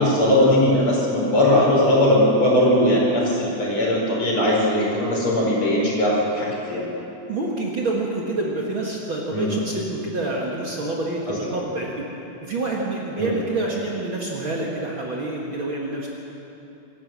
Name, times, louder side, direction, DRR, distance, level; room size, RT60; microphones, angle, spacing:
voice 1, 0.0-6.8 9.3-9.6 11.3-11.6 13.2-13.3, left 1 dB, 45° left, -3 dB, 5.4 m, -19 dB
voice 2, 7.3-12.1 12.4-16.1, right 2 dB, 45° right, -2 dB, 2.4 m, -27 dB
26.5 x 13.0 x 7.7 m, 2.9 s
omnidirectional pair, 3.5 m